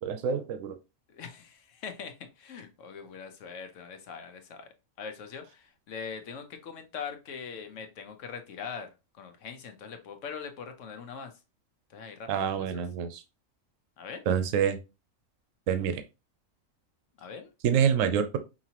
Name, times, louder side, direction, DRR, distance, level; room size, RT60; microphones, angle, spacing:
voice 1, 0.0-0.8 12.3-13.2 14.3-14.8 15.7-16.0 17.6-18.4, right 8 dB, 75° right, 1.0 m, -26 dB
voice 2, 1.1-4.7 5.0-11.3 11.9-12.5 12.7-12.8 14.0-14.2 17.2-17.5, left 6 dB, 70° left, 1.1 m, -42 dB
5.1 x 2.8 x 2.8 m
omnidirectional pair, 1.4 m